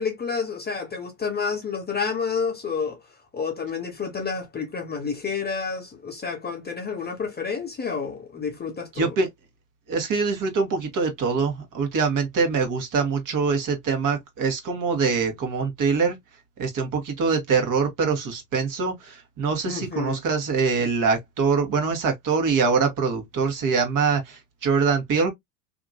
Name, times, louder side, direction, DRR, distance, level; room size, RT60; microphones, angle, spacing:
voice 1, 0.0-3.0 3.3-9.2 19.7-20.2, left 5 dB, 20° left, 0.8 m, -29 dB
voice 2, 9.0-9.3 9.9-16.2 16.6-25.3, right 5 dB, 40° right, 1.4 m, -24 dB
2.8 x 2.6 x 2.6 m
supercardioid pair, 95°, 48 cm